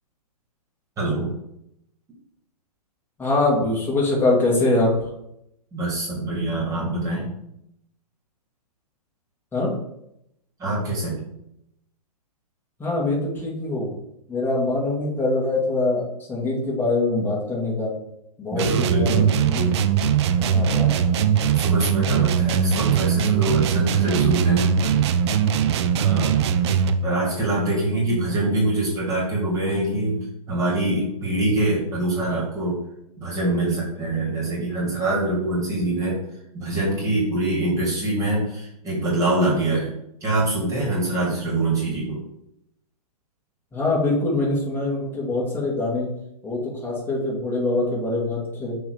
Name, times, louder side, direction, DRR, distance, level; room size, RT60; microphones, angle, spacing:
voice 1, 1.0-1.3 5.7-7.3 10.6-11.2 18.5-19.3 21.5-24.7 26.0-26.5 27.0-32.8 33.2-36.2 36.5-39.9 40.2-42.2, right 2 dB, 15° right, -5 dB, 2.1 m, -24 dB
voice 2, 3.2-5.1 9.5-9.7 12.8-13.9 14.3-18.0 18.4-19.7 20.4-21.0 43.7-46.1 46.4-48.8, left 2 dB, 10° left, -5 dB, 1.9 m, -24 dB
sound 1, 18.6-27.1, right 8 dB, 45° right, 0.5 m, -20 dB
7.0 x 3.1 x 4.8 m, 0.80 s
hypercardioid pair, 130°, 20 cm